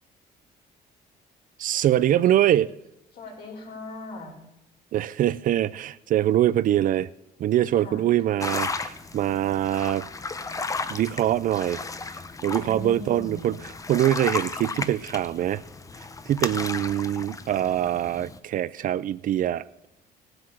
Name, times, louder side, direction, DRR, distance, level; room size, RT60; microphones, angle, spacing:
voice 1, 1.6-2.7 4.9-7.1 7.4-10.1 10.9-11.8 12.4-13.6 13.9-15.6 16.3-19.6, right 12 dB, 55° right, 0.4 m, -23 dB
voice 2, 3.1-4.4 7.7-8.1 12.5-13.4, left 2 dB, 65° left, 4.3 m, -39 dB
sound 1, 8.4-18.4, left 3 dB, 20° left, 0.8 m, -34 dB
17.0 x 7.9 x 5.7 m
cardioid pair, 110°, 17 cm